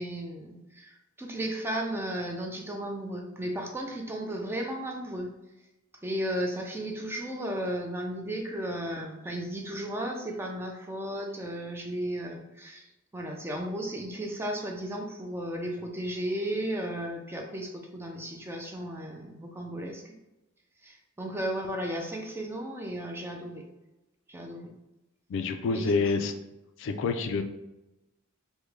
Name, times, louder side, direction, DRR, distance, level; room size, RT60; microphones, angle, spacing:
voice 1, 0.0-5.3 6.0-12.8 13.1-20.1 20.8-23.6 24.3-24.7 25.7-26.0, right 1 dB, 10° right, 1 dB, 0.4 m, -34 dB
voice 2, 25.3-26.3 26.8-27.4, left 4 dB, 60° left, 7 dB, 0.3 m, -27 dB
3.5 x 2.1 x 3.2 m, 0.96 s
head